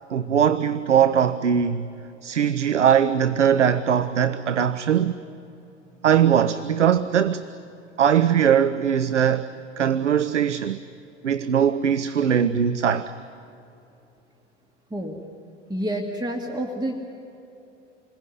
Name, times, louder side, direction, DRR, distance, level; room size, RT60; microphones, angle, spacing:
voice 1, 0.1-1.9 2.2-5.2 6.0-7.4 8.0-9.5 9.8-10.8 11.2-13.1, right 8 dB, 80° right, 0.7 m, -20 dB
voice 2, 15.7-16.9, right 1 dB, 10° right, 2.2 m, -28 dB
28.0 x 21.5 x 10.0 m
figure-of-eight pair, 75°, 36 cm